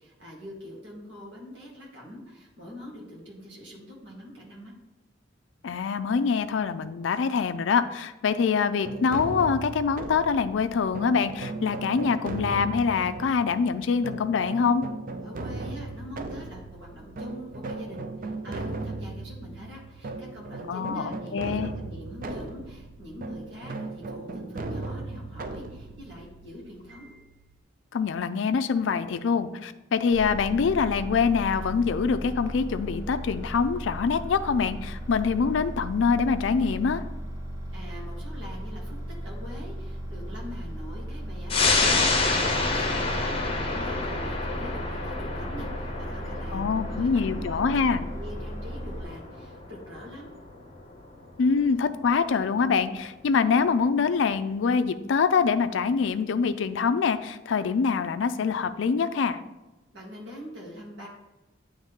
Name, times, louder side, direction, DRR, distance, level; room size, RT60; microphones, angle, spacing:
voice 1, 0.0-4.7 15.2-27.5 37.7-50.4 59.9-61.1, equal, 65° right, -4 dB, 1.8 m, -44 dB
voice 2, 5.6-14.8 20.7-21.7 27.9-37.0 46.5-48.0 51.4-59.4, left 5 dB, 75° left, 11 dB, 0.4 m, -25 dB
sound 1, 8.8-27.5, right 2 dB, 45° right, 0.4 m, -37 dB
sound 2, 30.1-49.0, equal, 15° right, 1.1 m, -36 dB
sound 3, 41.5-52.5 52.9-53.0, left 3 dB, 30° left, 0.7 m, -29 dB
9.0 x 3.2 x 3.6 m, 1.0 s
head